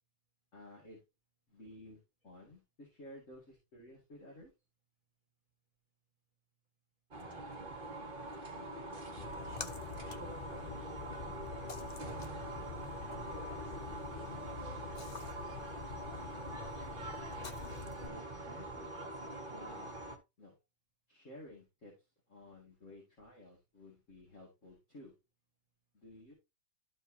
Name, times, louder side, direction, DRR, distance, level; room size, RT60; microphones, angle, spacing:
voice 1, 0.5-1.0 1.5-4.5 18.0-18.9 19.5-19.9 20.4-20.5 21.1-21.9 22.3-25.1 25.9-26.3, left 1 dB, 45° left, -3 dB, 2.7 m, -54 dB
sound 1, 7.1-20.2, right 2 dB, 30° right, 1.6 m, -44 dB
voice 2, 7.3-8.0 8.5-16.9, left 1 dB, 25° left, -4 dB, 4.4 m, -59 dB
Splash splatter, 9.2-18.1, left 6 dB, 85° left, 0.3 m, -47 dB
13.0 x 4.6 x 2.9 m, 0.24 s
omnidirectional pair, 1.9 m